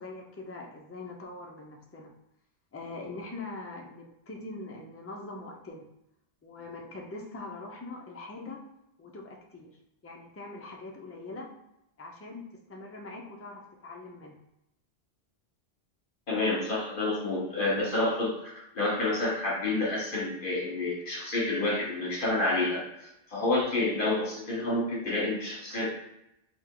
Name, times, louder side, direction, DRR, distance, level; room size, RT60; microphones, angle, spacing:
voice 1, 0.0-2.1 2.7-5.8 6.4-8.6 9.0-9.7 10.0-11.5 12.0-12.4 12.7-14.3, left 2 dB, 20° left, 0 dB, 0.5 m, -42 dB
voice 2, 16.3-25.9, left 2 dB, 55° left, -2 dB, 1.3 m, -29 dB
3.5 x 2.9 x 3.7 m, 0.84 s
omnidirectional pair, 1.0 m